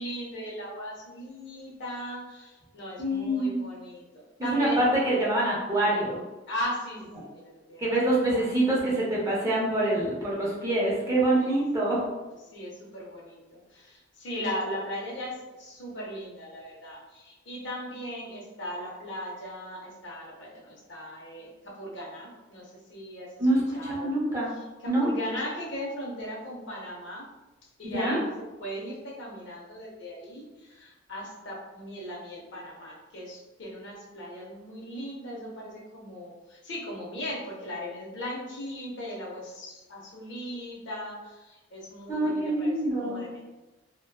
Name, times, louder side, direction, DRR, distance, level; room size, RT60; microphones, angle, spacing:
voice 1, 0.0-4.0 4.4-4.9 6.5-7.9 8.2-8.8 11.3-11.6 12.4-23.3 23.7-24.2 24.5-27.3 27.8-28.2 28.6-43.5, equal, 65° left, -3 dB, 0.6 m, -38 dB
voice 2, 3.0-3.6 4.4-6.2 7.8-12.1 23.4-24.5 24.9-25.1 27.9-28.2 42.1-43.2, right 1 dB, 15° right, -6 dB, 0.6 m, -25 dB
2.5 x 2.2 x 2.2 m, 1.1 s
head